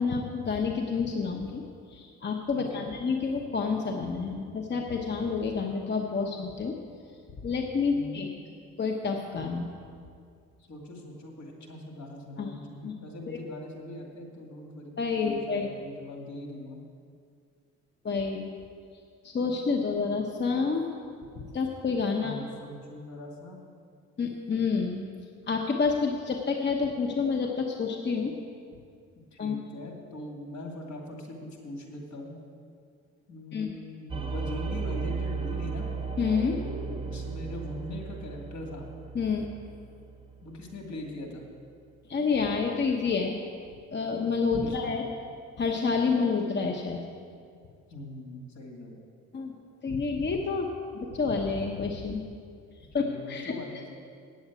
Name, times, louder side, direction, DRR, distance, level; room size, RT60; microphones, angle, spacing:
voice 1, 0.0-1.6 1.9-6.7 7.4-8.3 8.8-9.7 12.4-12.5 12.8-12.9 13.3-13.4 15.0-15.7 18.0-18.5 19.2-20.9 21.4-22.4 24.2-25.0 25.5-28.3 29.4-29.6 33.5-33.7 36.2-36.5 39.1-39.5 42.1-43.4 43.9-45.1 45.6-47.1 49.3-49.5 49.8-50.7 50.9-52.2 52.9-53.5, left 5 dB, 35° left, 2 dB, 0.9 m, -28 dB
voice 2, 2.5-2.9 7.9-8.3 10.7-16.8 22.2-23.6 29.3-32.4 33.3-35.9 36.5-38.9 40.4-41.5 44.6-45.0 47.9-49.0 53.0-53.9, left 1 dB, 65° left, 1 dB, 2.2 m, -41 dB
sound 1, 34.1-40.9, right 5 dB, 15° right, 1.3 m, -35 dB
9.1 x 7.9 x 8.3 m, 2.3 s
cardioid pair, 90°, 30 cm